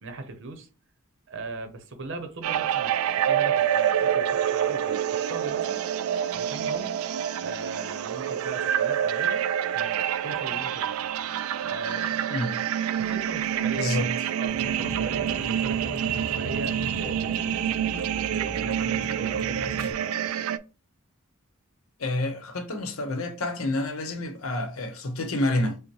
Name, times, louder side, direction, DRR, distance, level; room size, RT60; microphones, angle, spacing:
voice 1, 0.0-0.7 1.3-5.9 6.3-7.0 7.4-9.5 9.7-10.9 11.6-12.4 13.0-14.1 14.4-17.7 18.2-20.2, right 3 dB, 60° right, 0.7 m, -39 dB
sound 1, 2.4-20.6, right 9 dB, 80° right, 0.3 m, -27 dB
voice 2, 13.7-14.1 22.0-25.8, left 1 dB, 75° left, 0.8 m, -28 dB
Vehicle, 14.5-19.9, left 1 dB, 45° left, 1.0 m, -38 dB
5.2 x 2.1 x 3.0 m
head